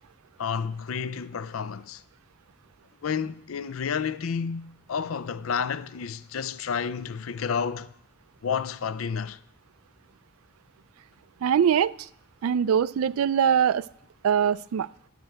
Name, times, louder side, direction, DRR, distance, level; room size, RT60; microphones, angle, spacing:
voice 1, 0.4-2.0 3.0-7.9 8.4-9.4, left 6 dB, 75° left, 0.5 m, -30 dB
voice 2, 11.4-11.9 12.4-13.8 14.2-14.9, right 8 dB, 85° right, 0.3 m, -22 dB
11.0 x 4.5 x 7.8 m
head